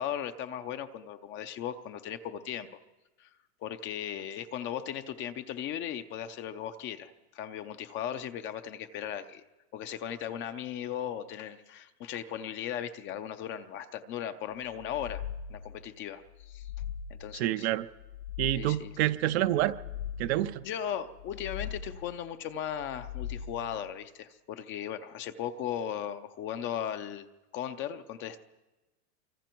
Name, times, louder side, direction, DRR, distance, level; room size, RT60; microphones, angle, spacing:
voice 1, 0.0-2.8 3.2-3.3 3.6-9.4 9.7-15.2 15.5-16.7 17.1-17.7 18.6-18.9 20.6-27.3 27.5-28.4, left 9 dB, 25° left, 10 dB, 0.6 m, -37 dB
sound 1, 14.7-15.8 16.3-17.4 17.9-19.0 19.5-20.6 21.1-22.2 22.7-23.8, left 8 dB, 75° left, 3.5 m, -40 dB
voice 2, 17.3-17.8 18.4-19.8 20.2-20.6, right 14 dB, 45° right, 11 dB, 0.6 m, -28 dB
25.5 x 24.5 x 4.5 m, 1.1 s
supercardioid pair, 145°, 47 cm